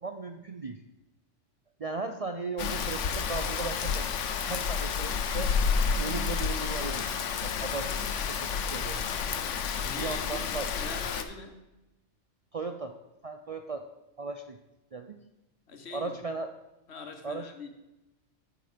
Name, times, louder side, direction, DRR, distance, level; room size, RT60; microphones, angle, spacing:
voice 1, 0.0-0.8 1.8-4.1 4.4-5.5 6.0-7.1 7.4-9.0 10.0-10.7 12.5-12.9 13.2-13.9 14.2-14.6 14.9-15.2 15.9-16.5 17.2-17.5, right 3 dB, 55° right, 6 dB, 0.4 m, -37 dB
Rain, 2.6-11.2, left 6 dB, 75° left, 1.1 m, -30 dB
voice 2, 9.7-11.6 15.7-16.2 16.9-17.7, left 4 dB, 60° left, 5 dB, 1.3 m, -43 dB
9.5 x 7.4 x 5.0 m, 0.99 s
omnidirectional pair, 1.3 m